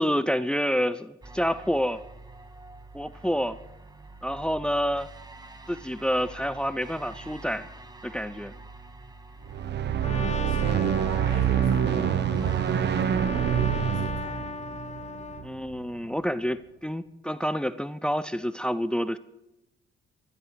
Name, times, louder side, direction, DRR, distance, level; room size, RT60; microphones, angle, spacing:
voice 1, 0.0-2.0 2.9-3.6 4.2-5.1 5.7-7.7 8.0-8.5 15.4-19.2, equal, 5° left, 14 dB, 0.6 m, -28 dB
sound 1, 1.2-12.8, right 2 dB, 20° right, 1.7 m, -47 dB
sound 2, 9.4-15.8, right 8 dB, 60° right, 1.0 m, -26 dB
Trumpet, 10.0-15.5, left 5 dB, 35° left, 1.3 m, -38 dB
voice 2, 10.0-10.9 11.2-13.1 13.5-14.5, right 1 dB, 80° right, 1 dB, 7.0 m, -43 dB
13.5 x 12.0 x 8.1 m, 0.90 s
cardioid pair, 90°, 20 cm